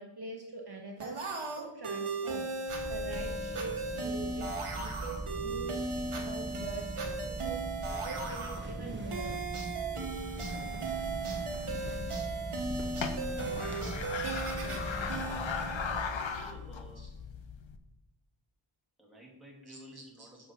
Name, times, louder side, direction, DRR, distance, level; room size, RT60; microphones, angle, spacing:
voice 1, 0.0-2.5 2.9-4.5 4.7-9.3 17.0-17.1 19.7-20.4, right 3 dB, 50° right, 1 dB, 1.1 m, -44 dB
sound 1, 1.0-16.5, right 3 dB, 85° right, 1.2 m, -37 dB
sound 2, 2.7-16.0, right 2 dB, 20° right, 1.2 m, -41 dB
sound 3, 11.5-17.8, left 6 dB, 65° left, 0.8 m, -39 dB
voice 2, 11.7-12.1 15.7-15.8 16.3-17.1 19.0-20.5, equal, ahead, -3 dB, 2.6 m, -53 dB
6.7 x 4.4 x 5.7 m, 0.96 s
wide cardioid pair, 50°, 50 cm